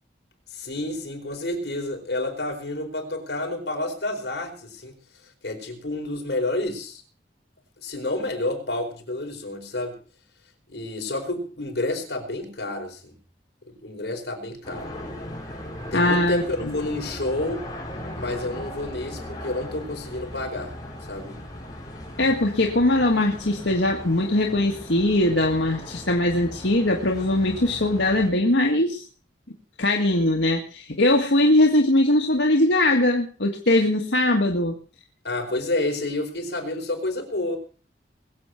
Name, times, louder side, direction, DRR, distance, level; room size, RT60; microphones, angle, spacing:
voice 1, 0.5-4.9 5.4-7.0 7.8-10.0 10.7-13.1 13.8-14.9 15.9-17.7 18.1-20.7 21.1-21.4 35.2-37.6, left 2 dB, 65° left, 2 dB, 4.8 m, -29 dB
sound 1, 14.6-28.3, left 1 dB, 20° left, 4.5 m, -38 dB
voice 2, 15.9-16.7 22.2-29.0 29.8-34.8, left 1 dB, 90° left, 1 dB, 1.8 m, -21 dB
21.5 x 8.1 x 5.8 m, 0.40 s
head